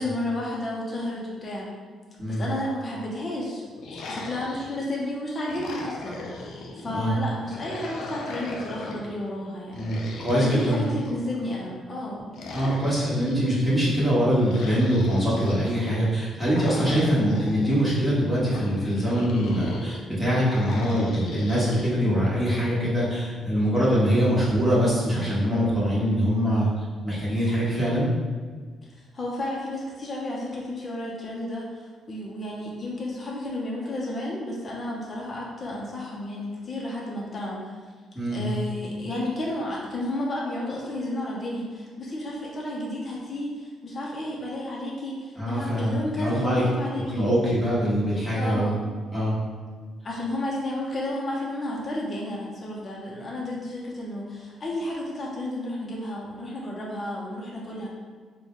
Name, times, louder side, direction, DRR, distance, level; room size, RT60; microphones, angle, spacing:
voice 1, 0.0-1.7 2.3-12.8 28.8-37.8 38.3-47.3 48.3-48.8 50.0-57.9, left 1 dB, 35° left, -4 dB, 0.7 m, -32 dB
sound 1, 3.8-5.0 5.4-6.9 7.5-9.1 9.7-11.4 12.3-13.7 14.4-15.8 16.5-17.8 18.5-20.0 20.5-21.9, left 3 dB, 80° left, 0.4 m, -38 dB
voice 2, 9.7-10.9 12.5-28.1 38.1-38.4 45.4-46.6 47.1-48.8 49.1-49.3, equal, 5° right, -9 dB, 1.4 m, -23 dB
3.9 x 2.2 x 3.1 m, 1.5 s
cardioid pair, 90°, 0 cm